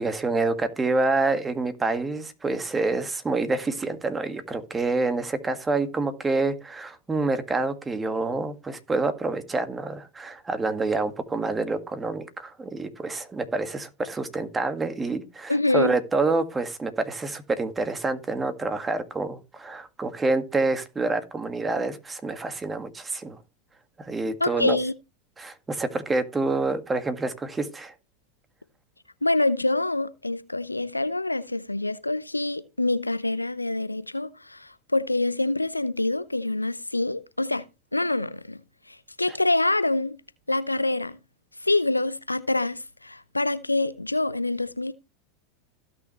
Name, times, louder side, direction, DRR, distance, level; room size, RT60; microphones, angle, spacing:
voice 1, 0.0-23.4 24.0-24.8 25.4-27.9, right 3 dB, 15° right, 1.8 m, -27 dB
voice 2, 15.5-16.0 24.4-24.9 29.2-37.7 37.9-38.6 38.9-40.2 40.5-41.2 41.6-44.9, left 2 dB, 90° left, 0.6 m, -26 dB
16.0 x 6.3 x 3.1 m
figure-of-eight pair, 85°, 0 cm